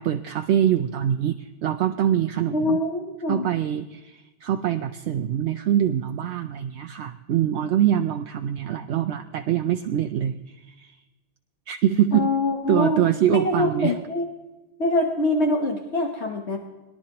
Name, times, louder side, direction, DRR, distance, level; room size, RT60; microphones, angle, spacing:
voice 1, 0.0-2.8 3.3-10.9 11.7-12.3 12.7-14.0, right 10 dB, 75° right, 7 dB, 0.8 m, -24 dB
voice 2, 2.5-3.5 12.1-13.0 13.3-14.2 14.8-16.6, left 2 dB, 70° left, 2 dB, 1.3 m, -24 dB
21.5 x 11.5 x 2.9 m, 1.1 s
omnidirectional pair, 1.2 m